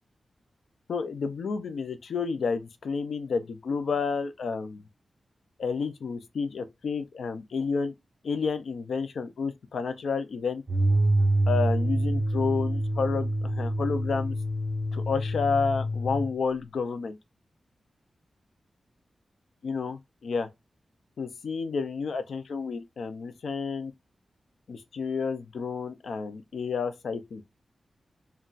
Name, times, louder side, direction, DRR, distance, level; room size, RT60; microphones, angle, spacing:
voice 1, 0.9-4.8 5.6-7.9 8.2-10.6 11.5-14.4 14.9-17.2 19.6-20.5 21.2-23.9 24.7-27.4, left 5 dB, 85° left, 0.4 m, -30 dB
sound 1, 10.7-16.3, right 1 dB, 20° right, 1.0 m, -26 dB
3.8 x 2.2 x 2.3 m
wide cardioid pair, 140°, 0 cm